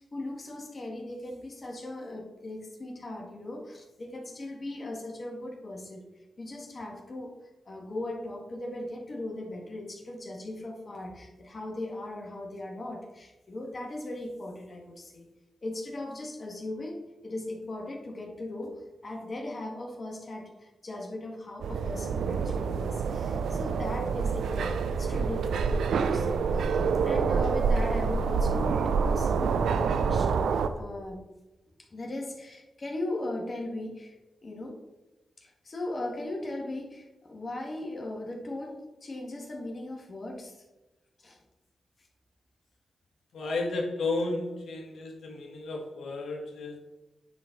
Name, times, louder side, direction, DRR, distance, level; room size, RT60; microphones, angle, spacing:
voice 1, 0.0-6.0 6.4-7.3 7.7-15.3 15.6-31.2 31.9-34.2 34.4-34.7 35.4-40.6 41.2-41.4, left 1 dB, 50° left, 0 dB, 2.0 m, -38 dB
sound 1, 21.6-30.7, right 5 dB, 85° right, 0.5 m, -27 dB
voice 2, 43.3-46.8, left 2 dB, 75° left, 1 dB, 1.7 m, -33 dB
9.1 x 4.4 x 5.2 m, 1.0 s
cardioid pair, 50°, 0 cm